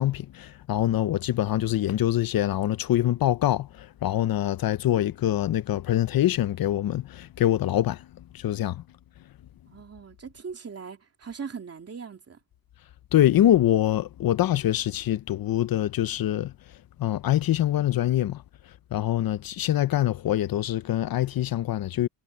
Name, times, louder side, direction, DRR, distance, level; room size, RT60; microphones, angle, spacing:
voice 1, 0.0-3.7 4.0-8.0 8.3-8.8 13.1-16.5 17.0-18.4 18.9-22.1, left 12 dB, 50° left, 0.6 m, -24 dB
voice 2, 9.7-12.4, right 6 dB, 30° right, 3.0 m, -40 dB
cardioid pair, 145°, 46 cm